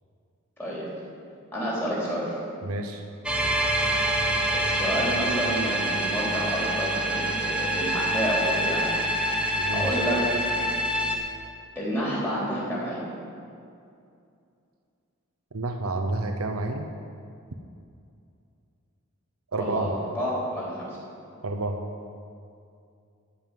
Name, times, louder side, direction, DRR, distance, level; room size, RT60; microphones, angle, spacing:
voice 1, 1.5-2.4 4.5-9.0 9.5-10.2 11.8-13.0 19.5-19.9 20.2-21.0, equal, 10° left, -6 dB, 3.6 m, -29 dB
voice 2, 2.6-3.0 9.6-10.0 15.5-16.9 19.5-19.9 21.4-21.8, right 2 dB, 85° right, 4 dB, 0.8 m, -29 dB
sound 1, 3.2-11.2, right 1 dB, 5° right, 1.0 m, -26 dB
13.5 x 5.6 x 9.2 m, 2.5 s
head